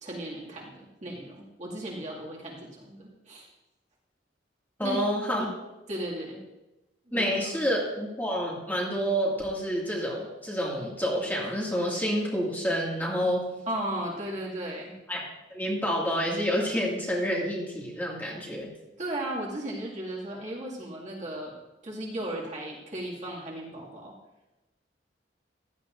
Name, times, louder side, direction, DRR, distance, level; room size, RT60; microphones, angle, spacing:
voice 1, 0.0-3.5 4.8-5.1 5.9-6.4 7.1-7.4 13.7-14.9 19.0-21.5 21.8-24.1, right 1 dB, 40° right, -4 dB, 2.2 m, -35 dB
voice 2, 4.8-5.5 7.1-13.4 15.1-15.2 15.5-18.7, equal, 10° left, -4 dB, 2.1 m, -28 dB
15.5 x 11.0 x 2.6 m, 1.0 s
head